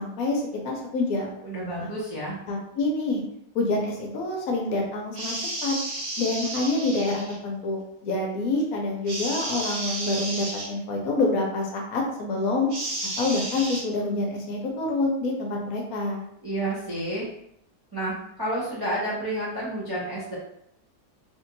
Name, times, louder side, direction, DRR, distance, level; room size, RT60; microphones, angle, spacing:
voice 1, 0.0-1.3 1.8-1.9 2.5-3.2 3.5-5.3 5.6-5.8 6.2-12.7 13.2-16.2, left 2 dB, 70° left, 0 dB, 1.0 m, -27 dB
voice 2, 1.4-2.4 16.4-17.3 17.9-20.3, right 1 dB, 40° right, -8 dB, 0.3 m, -30 dB
sound 1, 5.1-7.4 9.1-10.7 12.7-13.8, right 1 dB, 70° right, 1.3 m, -32 dB
3.2 x 2.7 x 2.5 m, 0.75 s
omnidirectional pair, 1.7 m